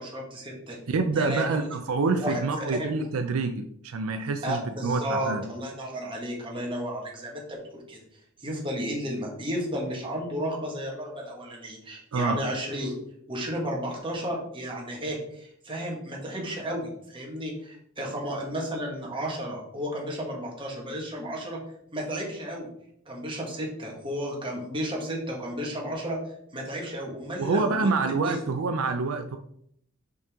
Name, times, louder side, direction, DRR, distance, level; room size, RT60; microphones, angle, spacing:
voice 1, 0.0-0.8 1.2-1.6 1.9-2.9 4.4-8.0 8.4-13.0 13.3-21.6 21.9-22.7 23.0-26.2 26.5-28.0 28.2-28.5, equal, 25° right, -2 dB, 1.6 m, -33 dB
voice 2, 0.9-5.4 12.1-12.4 27.4-29.4, right 4 dB, 70° right, 7 dB, 0.5 m, -27 dB
5.4 x 5.3 x 3.6 m, 0.70 s
head